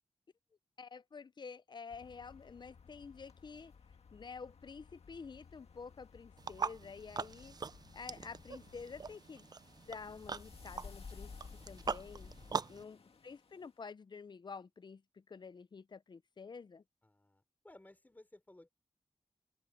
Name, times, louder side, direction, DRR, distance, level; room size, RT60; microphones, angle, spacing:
voice 1, 0.8-3.7 4.1-7.6 7.9-9.5 9.9-12.3 12.7-16.8, left 5 dB, 45° left, 0.5 m, -49 dB
sound 1, 1.9-9.2, left 6 dB, 80° left, 1.6 m, -60 dB
sound 2, 6.4-12.8, right 5 dB, 40° right, 0.4 m, -42 dB
sound 3, 8.3-13.6, left 5 dB, 65° left, 2.1 m, -54 dB
voice 2, 12.4-13.2 17.0-18.7, left 1 dB, 15° left, 4.0 m, -60 dB
open air
wide cardioid pair, 135°, 11 cm